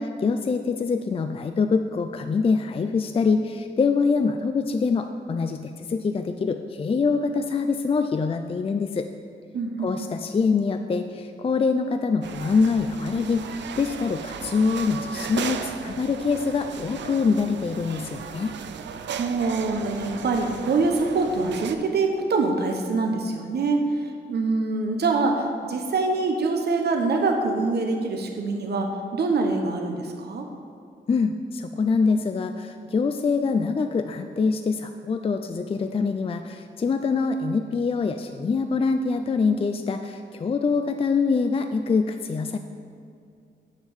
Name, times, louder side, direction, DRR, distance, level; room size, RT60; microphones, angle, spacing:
voice 1, 0.0-9.1 9.8-18.5 31.1-42.6, left 4 dB, 30° left, 7 dB, 0.4 m, -24 dB
voice 2, 9.5-10.1 19.1-30.4, right 3 dB, 65° right, 3 dB, 0.9 m, -25 dB
sound 1, 12.2-21.7, right 7 dB, 80° right, 0.5 m, -36 dB
7.3 x 5.5 x 7.1 m, 2.4 s
cardioid pair, 95°, 18 cm